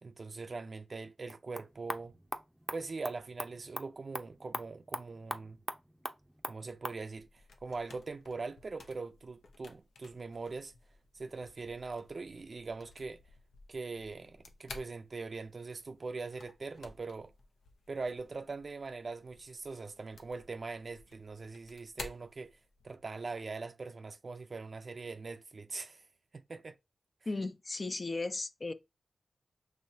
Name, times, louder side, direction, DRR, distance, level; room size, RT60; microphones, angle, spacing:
voice 1, 0.0-2.1 2.7-5.6 6.5-10.7 11.1-13.2 13.7-17.3 17.9-22.5 22.8-26.0 26.3-26.8 27.2-27.3, right 4 dB, 55° right, 0.4 m, -42 dB
sound 1, 1.2-7.0, equal, 5° right, 0.6 m, -43 dB
sound 2, 7.2-23.0, left 3 dB, 90° left, 0.7 m, -54 dB
voice 2, 27.3-28.7, left 3 dB, 45° left, 0.5 m, -36 dB
5.3 x 3.1 x 2.7 m
cardioid pair, 50°, 0 cm